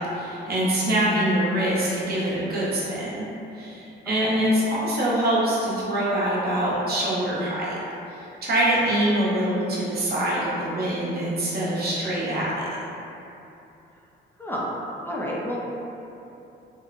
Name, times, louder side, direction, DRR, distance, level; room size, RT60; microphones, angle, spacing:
voice 1, 0.0-3.3 3.5-7.8 8.1-12.8, right 1 dB, 50° right, -7 dB, 0.8 m, -24 dB
voice 2, 4.1-4.5 14.4-14.7 15.0-15.6, equal, 10° left, -5 dB, 0.4 m, -31 dB
2.9 x 2.0 x 2.5 m, 2.9 s
cardioid pair, 90°, 20 cm